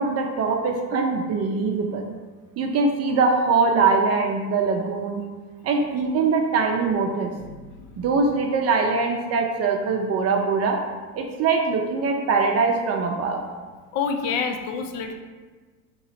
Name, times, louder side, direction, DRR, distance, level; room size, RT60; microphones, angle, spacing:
voice 1, 0.0-2.0 2.6-5.2 5.6-7.3 8.0-10.8 11.1-13.4, right 4 dB, 40° right, 2 dB, 0.5 m, -22 dB
voice 2, 7.4-7.9 13.9-15.2, left 5 dB, 65° left, 5 dB, 0.6 m, -28 dB
3.0 x 2.8 x 4.1 m, 1.4 s
hypercardioid pair, 80°, 41 cm